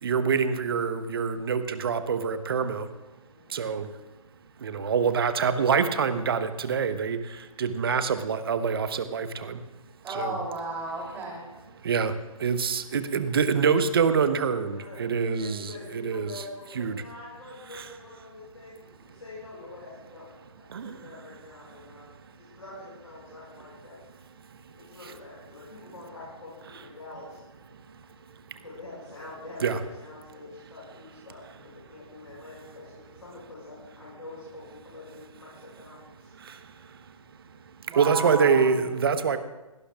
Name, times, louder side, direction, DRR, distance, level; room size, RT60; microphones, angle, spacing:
voice 1, 0.0-2.9 3.5-3.9 4.6-9.6 10.1-10.3 11.8-15.7 16.0-16.3 16.8-17.0 17.7-17.8 20.7-21.0 29.6-29.8 36.4-37.0 37.9-39.4, right 6 dB, 40° right, 11 dB, 1.1 m, -26 dB
voice 2, 3.2-3.7 14.6-24.0 24.8-27.4 28.6-36.3, left 2 dB, 65° left, -6 dB, 6.4 m, -46 dB
voice 3, 10.0-11.4 37.9-38.7, right 2 dB, 10° right, -1 dB, 3.2 m, -33 dB
21.0 x 18.0 x 2.4 m, 1.1 s
figure-of-eight pair, 140°, 18 cm